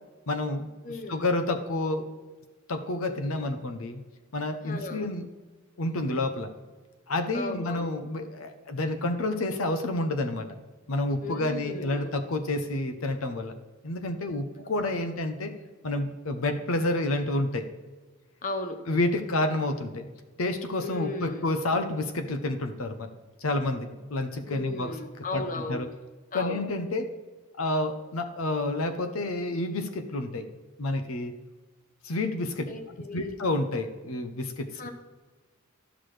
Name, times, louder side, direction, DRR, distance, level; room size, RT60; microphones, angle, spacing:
voice 1, 0.3-0.7 1.1-2.0 2.7-4.0 4.3-5.3 5.8-6.5 7.1-10.5 10.9-13.5 13.8-15.5 15.8-17.7 18.9-20.1 20.4-23.1 23.4-24.9 25.3-25.4 25.7-25.9 26.3-27.1 27.6-30.5 30.8-31.3 32.0-32.7 33.1-34.9, left 2 dB, 90° left, 8 dB, 0.7 m, -29 dB
voice 2, 0.8-1.3 4.6-5.1 7.3-7.9 11.2-12.2 14.6-15.1 18.4-18.8 20.8-21.5 24.5-25.8 26.3-26.6 32.7-33.4 34.7-34.9, left 2 dB, 40° left, 6 dB, 0.8 m, -36 dB
12.5 x 6.0 x 3.2 m, 1.3 s
head